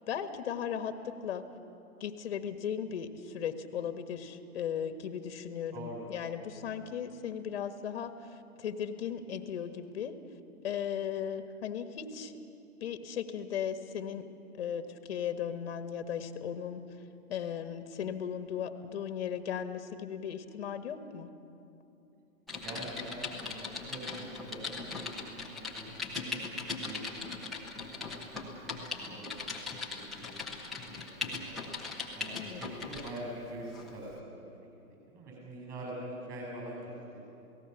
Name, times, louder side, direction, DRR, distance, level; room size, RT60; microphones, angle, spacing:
voice 1, 0.1-1.4 2.0-10.2 10.6-12.3 12.8-14.2 14.6-16.8 17.3-21.3 32.3-32.6, left 8 dB, 40° left, 9 dB, 1.4 m, -37 dB
voice 2, 5.7-6.1 22.6-26.4 26.8-27.0 27.3-30.7 31.0-31.7 32.1-34.7 35.1-37.2, right 1 dB, 20° right, -1 dB, 7.3 m, -45 dB
Typing, 22.5-33.2 33.7-33.9, left 4 dB, ahead, 0.7 m, -39 dB
28.0 x 18.0 x 6.9 m, 2.8 s
hypercardioid pair, 155°, 44 cm